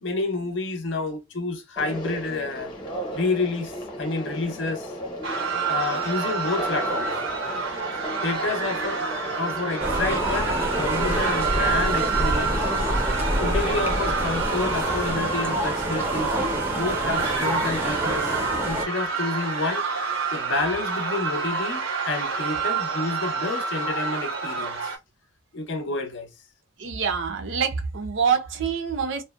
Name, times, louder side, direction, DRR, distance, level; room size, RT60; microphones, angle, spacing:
voice 1, 0.0-2.7 3.1-4.9 5.7-7.1 8.2-9.0 9.4-12.5 13.4-16.3 16.7-18.4 18.6-19.9 20.3-24.9 25.5-26.3, left 3 dB, 65° left, 0.6 m, -29 dB
Conversation, 1.8-11.8, right 1 dB, 25° left, 0.7 m, -34 dB
sound 1, 5.2-25.0, right 5 dB, 90° right, 0.8 m, -28 dB
sound 2, 9.8-18.9, right 1 dB, 10° right, 0.5 m, -27 dB
voice 2, 26.8-29.2, right 6 dB, 65° right, 0.5 m, -26 dB
2.7 x 2.1 x 2.2 m
head